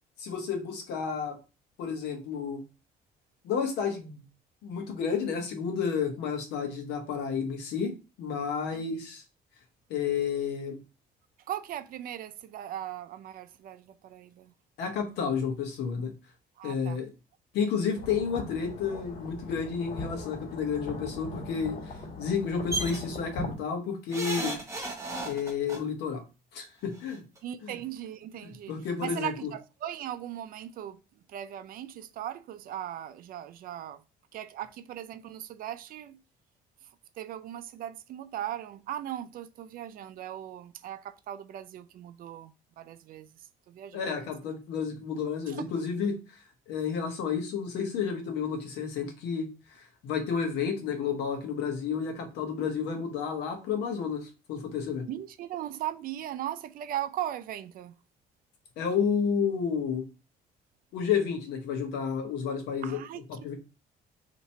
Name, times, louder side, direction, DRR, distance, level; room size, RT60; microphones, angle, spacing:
voice 1, 0.2-1.4 1.8-2.6 3.4-4.2 4.6-7.9 8.2-9.2 9.9-10.8 14.8-16.1 16.6-17.1 17.5-24.6 25.2-26.2 26.5-27.2 27.6-27.8 28.4-29.5 43.9-55.1 58.8-60.0 60.9-63.0 63.3-63.5, left 6 dB, 85° left, 1.1 m, -31 dB
voice 2, 11.5-14.5 16.6-17.0 27.4-28.7 29.0-31.0 31.3-34.0 34.3-36.2 37.2-43.3 43.7-44.0 45.5-45.7 55.1-57.9 62.8-63.5, right 11 dB, 60° right, 0.4 m, -38 dB
sound 1, 17.9-23.6, left 2 dB, 45° left, 1.9 m, -40 dB
sound 2, 22.7-23.0 24.1-25.8 27.0-27.1 27.4-27.5, right 2 dB, 15° right, 0.9 m, -34 dB
2.9 x 2.7 x 4.2 m
cardioid pair, 110°, 17 cm